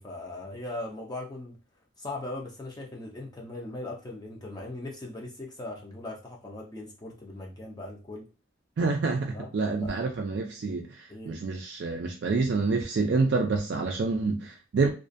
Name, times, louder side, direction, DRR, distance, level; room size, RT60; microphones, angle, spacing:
voice 1, 0.0-1.6 2.0-8.3 9.3-9.5 9.8-9.9 11.1-11.4, left 2 dB, 20° left, 0.4 m, -39 dB
voice 2, 8.8-14.9, right 4 dB, 60° right, 0.3 m, -27 dB
2.4 x 2.2 x 2.5 m
head